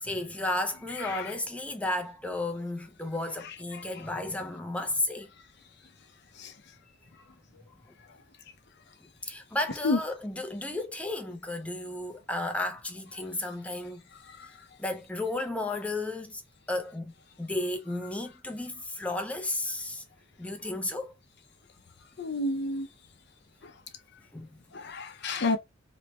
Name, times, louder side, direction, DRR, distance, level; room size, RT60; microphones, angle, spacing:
voice 1, 0.0-5.3 9.2-14.0 14.8-16.4 16.7-17.1 17.4-20.0 20.4-21.1 24.3-24.6, left 2 dB, 5° left, 0.5 m, -33 dB
voice 2, 22.2-22.9 24.7-25.6, left 2 dB, 60° left, 0.6 m, -29 dB
3.1 x 2.1 x 4.1 m
head